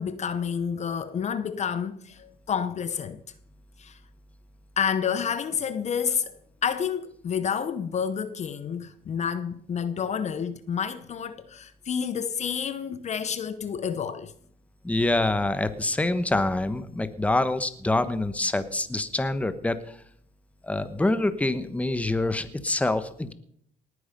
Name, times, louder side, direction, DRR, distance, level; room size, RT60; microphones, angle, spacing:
voice 1, 0.0-3.2 3.8-4.0 4.8-6.3 6.6-14.3, left 7 dB, 40° left, 0.9 m, -29 dB
voice 2, 14.8-20.0 20.6-23.3, left 2 dB, 10° left, 1.1 m, -26 dB
18.5 x 9.6 x 5.3 m
cardioid pair, 110°, 17 cm